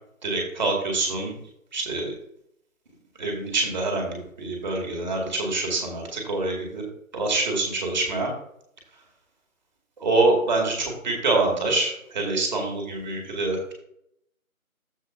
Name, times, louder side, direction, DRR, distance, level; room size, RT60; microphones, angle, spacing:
voice 1, 0.2-1.4 1.7-2.1 3.2-6.8 7.1-8.3 10.0-13.7, right 2 dB, 30° right, 0 dB, 2.3 m, -25 dB
14.0 x 4.8 x 2.8 m, 0.72 s
figure-of-eight pair, 155°, 42 cm